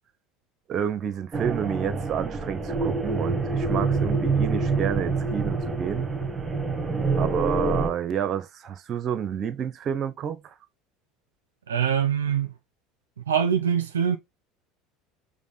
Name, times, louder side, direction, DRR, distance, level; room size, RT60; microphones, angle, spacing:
voice 1, 0.7-6.1 7.1-10.6, right 8 dB, 45° right, 0.7 m, -29 dB
sound 1, 1.3-7.9, right 3 dB, 25° right, 1.3 m, -26 dB
voice 2, 11.7-12.5 13.3-14.2, right 8 dB, 90° right, 0.5 m, -23 dB
5.1 x 2.2 x 3.4 m
hypercardioid pair, 75°, 0 cm